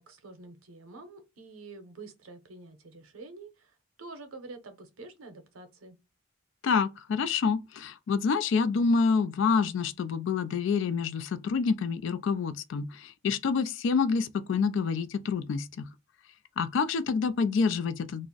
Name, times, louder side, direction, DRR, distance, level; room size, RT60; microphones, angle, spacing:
voice 1, 0.0-6.0, right 3 dB, 80° right, 0.7 m, -47 dB
voice 2, 6.6-15.9 16.6-18.3, left 5 dB, 60° left, 0.3 m, -27 dB
2.4 x 2.0 x 3.7 m
head